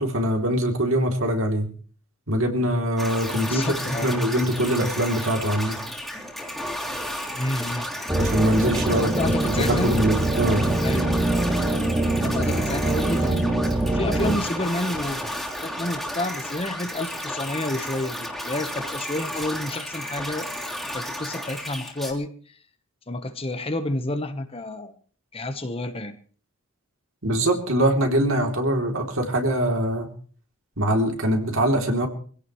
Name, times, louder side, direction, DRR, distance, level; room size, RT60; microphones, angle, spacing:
voice 1, 0.0-1.7 2.3-5.8 8.2-10.6 27.2-30.1 30.8-32.1, right 1 dB, 60° right, 3 dB, 3.1 m, -23 dB
sound 1, 3.0-22.1, equal, ahead, 3.2 m, -33 dB
voice 2, 3.4-4.1 7.3-7.9 9.0-9.9 10.8-11.1 12.2-13.6 13.8-15.2 15.6-20.5 20.9-22.6 23.1-25.0 25.3-26.2, left 1 dB, 25° left, 9 dB, 1.1 m, -30 dB
sound 2, 8.1-14.4, right 1 dB, 15° right, 1.9 m, -24 dB
24.5 x 16.5 x 3.2 m, 0.43 s
head